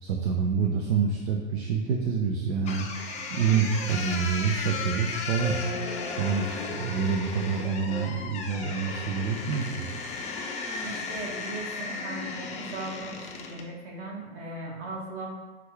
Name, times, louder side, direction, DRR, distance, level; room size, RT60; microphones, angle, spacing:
voice 1, 0.0-2.9 3.3-5.6 6.2-9.9, right 6 dB, 70° right, 2 dB, 0.5 m, -27 dB
sound 1, 2.6-13.7, left 4 dB, 20° left, 0.5 m, -35 dB
voice 2, 10.8-15.3, right 2 dB, 45° right, -2 dB, 1.3 m, -38 dB
5.8 x 2.4 x 3.2 m, 1.2 s
hypercardioid pair, 105°, 33 cm